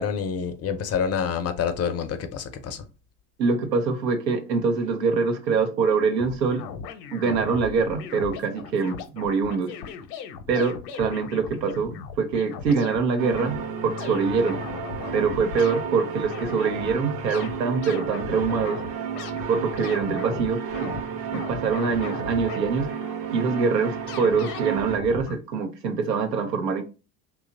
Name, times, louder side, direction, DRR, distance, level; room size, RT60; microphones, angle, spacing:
voice 1, 0.0-2.8, left 7 dB, 35° left, 0.5 m, -27 dB
voice 2, 3.4-6.6 7.1-9.7 10.5-13.6 13.8-14.6 15.1-18.8 19.5-20.9 21.3-22.9 23.3-26.8, right 5 dB, 90° right, 0.8 m, -24 dB
sound 1, 6.2-13.0 13.3-13.6 14.0-15.9 16.2-17.0 17.3-21.1 21.3-22.9 24.1-25.4, left 7 dB, 70° left, 0.7 m, -38 dB
sound 2, 13.2-25.0, right 6 dB, 50° right, 0.9 m, -32 dB
2.9 x 2.3 x 3.7 m
hypercardioid pair, 75°, 49 cm